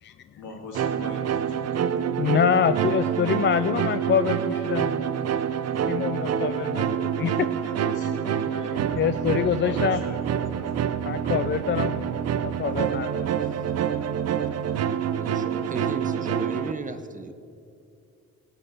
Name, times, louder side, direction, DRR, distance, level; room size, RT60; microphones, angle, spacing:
voice 1, 0.3-2.3 7.8-9.1 9.6-11.0, left 2 dB, 75° left, 0 dB, 3.1 m, -40 dB
sound 1, 0.7-16.7, right 9 dB, 55° right, 0.7 m, -27 dB
voice 2, 2.2-5.0 5.9-7.7 9.0-10.0 11.0-12.1 12.4-13.4, left 8 dB, 40° left, 12 dB, 0.4 m, -25 dB
voice 3, 15.2-17.3, right 4 dB, 25° right, 9 dB, 0.9 m, -34 dB
17.0 x 5.7 x 8.5 m, 2.5 s
cardioid pair, 90°, 30 cm